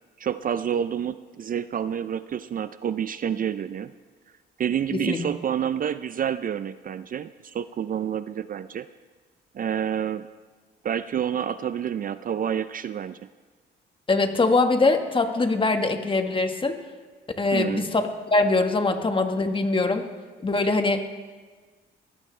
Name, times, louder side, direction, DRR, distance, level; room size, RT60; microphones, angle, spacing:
voice 1, 0.2-3.9 4.6-8.9 9.5-10.3 10.8-13.2 17.5-17.8, right 9 dB, 45° right, 14 dB, 0.5 m, -28 dB
voice 2, 4.9-5.3 14.1-16.8 17.4-20.1 20.4-21.0, left 3 dB, 25° left, 6 dB, 1.5 m, -23 dB
21.0 x 16.5 x 3.3 m, 1.4 s
cardioid pair, 90°, 20 cm